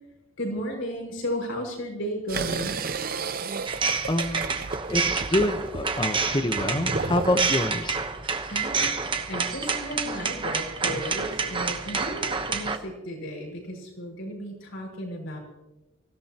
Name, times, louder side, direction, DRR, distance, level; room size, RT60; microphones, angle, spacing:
voice 1, 0.4-2.8 8.5-15.4, equal, 70° left, 0 dB, 6.0 m, -34 dB
sound 1, 2.3-7.6, right 4 dB, 45° right, 0.7 m, -33 dB
sound 2, 3.7-12.8, right 5 dB, 25° right, 1.1 m, -28 dB
voice 2, 4.1-4.5 4.9-8.0, left 1 dB, 20° left, 8 dB, 1.0 m, -26 dB
25.5 x 16.5 x 3.0 m, 1.0 s
head